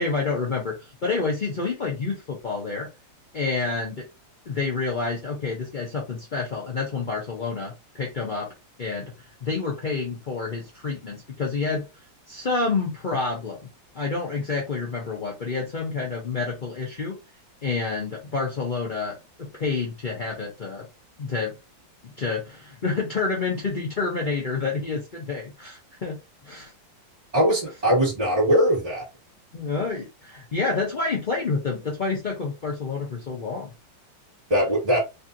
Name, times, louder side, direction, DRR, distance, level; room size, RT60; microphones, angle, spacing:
voice 1, 0.0-2.9 3.3-4.0 4.5-8.5 8.8-9.1 9.4-11.8 12.3-13.6 13.9-17.2 17.6-20.9 21.2-21.5 22.0-26.2 26.4-26.7 29.5-33.7, left 4 dB, 65° left, 0.4 m, -28 dB
voice 2, 27.3-29.0 34.5-35.0, equal, 20° right, 1.6 m, -21 dB
3.3 x 2.7 x 2.6 m
omnidirectional pair, 2.1 m